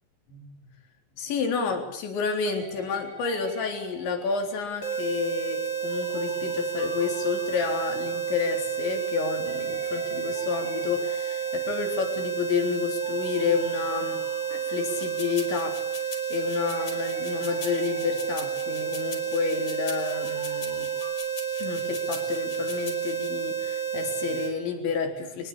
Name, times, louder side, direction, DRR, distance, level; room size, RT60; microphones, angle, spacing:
voice 1, 1.2-15.8 16.3-20.9 21.6-25.5, left 6 dB, 75° left, 4 dB, 5.9 m, -30 dB
sound 1, 2.4-9.2 9.4-16.3 16.6-21.1, right 2 dB, 85° right, 9.3 m, -49 dB
sound 2, 4.8-24.5, right 8 dB, 30° left, 3.7 m, -30 dB
sound 3, 15.0-23.3, left 5 dB, 50° left, 5.7 m, -42 dB
23.5 x 21.0 x 8.7 m, 0.73 s
omnidirectional pair, 5.2 m